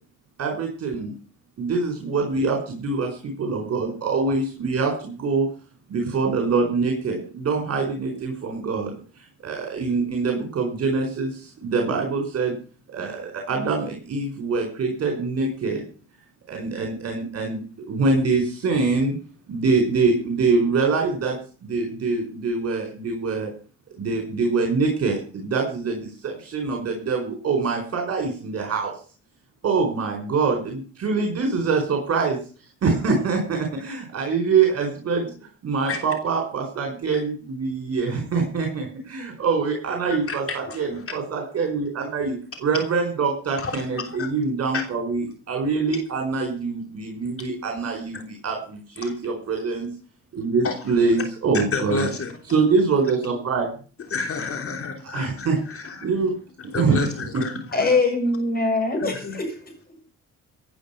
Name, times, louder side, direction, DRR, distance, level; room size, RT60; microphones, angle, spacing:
voice 1, 0.4-1.1 1.6-5.5 5.9-8.9 9.4-12.5 12.9-15.8 16.5-19.1 19.5-23.5 24.0-28.9 29.6-32.4 32.8-35.3 35.6-49.9 50.3-52.1 52.5-53.7 55.1-55.6 56.0-56.3 56.7-57.1, right 4 dB, 55° right, 3 dB, 4.9 m, -24 dB
voice 2, 40.3-41.0 43.6-44.3 44.7-44.8 48.1-48.2 49.0-49.1 50.6-50.9 51.7-52.3 54.1-56.1 56.7-57.9 59.0-59.4, left 4 dB, 45° left, 5 dB, 3.1 m, -30 dB
voice 3, 57.7-59.5, left 3 dB, 30° left, 4 dB, 7.2 m, -22 dB
16.5 x 9.7 x 5.9 m, 0.39 s
cardioid pair, 90°, 30 cm